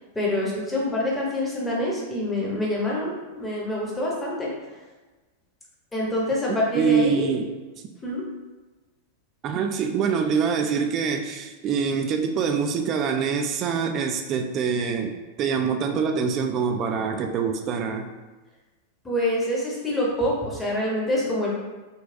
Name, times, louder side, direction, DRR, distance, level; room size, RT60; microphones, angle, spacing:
voice 1, 0.1-4.5 5.9-7.3 8.0-8.2 19.0-21.6, left 1 dB, 10° left, -4 dB, 0.9 m, -26 dB
voice 2, 6.5-7.5 9.4-18.1, right 6 dB, 35° right, 5 dB, 0.3 m, -25 dB
3.9 x 2.2 x 2.6 m, 1.2 s
figure-of-eight pair, 90°, 0 cm